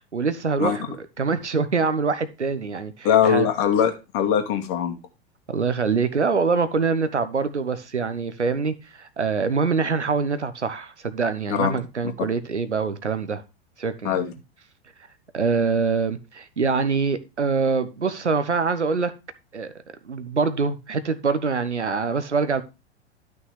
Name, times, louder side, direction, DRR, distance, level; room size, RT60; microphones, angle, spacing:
voice 1, 0.0-3.5 5.5-13.4 13.8-14.2 15.3-19.1 19.5-19.7 20.0-22.6, right 5 dB, 80° right, 1.2 m, -24 dB
voice 2, 3.0-5.0 11.5-11.7 14.0-14.3, left 8 dB, 40° left, 2.3 m, -21 dB
12.5 x 6.1 x 3.3 m
figure-of-eight pair, 90°, 34 cm